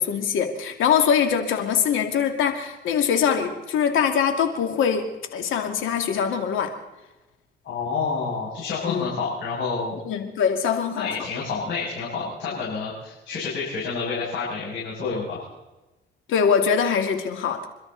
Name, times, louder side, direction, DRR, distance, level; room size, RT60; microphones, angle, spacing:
voice 1, 0.0-5.1 5.3-6.7 8.9-9.1 10.0-11.1 16.3-17.7, left 7 dB, 85° left, 5 dB, 2.4 m, -23 dB
voice 2, 7.6-10.0 10.9-15.5, left 4 dB, 65° left, -6 dB, 6.9 m, -29 dB
27.5 x 12.5 x 4.1 m, 1.0 s
cardioid pair, 90°, 20 cm